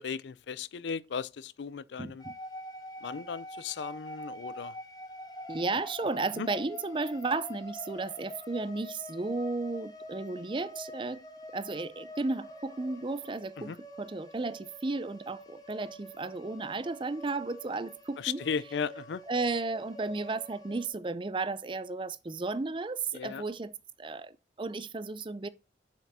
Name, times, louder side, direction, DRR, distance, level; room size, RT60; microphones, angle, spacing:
voice 1, 0.0-2.2 3.0-4.7 6.4-6.5 13.6-13.8 18.2-19.2 23.1-23.4, left 6 dB, 80° left, 0.4 m, -36 dB
voice 2, 2.0-2.3 5.5-11.2 11.5-18.4 19.3-23.7 24.0-25.5, right 3 dB, 30° right, 0.5 m, -34 dB
sound 1, 2.2-20.9, left 1 dB, 20° left, 1.2 m, -46 dB
7.5 x 5.8 x 4.1 m
head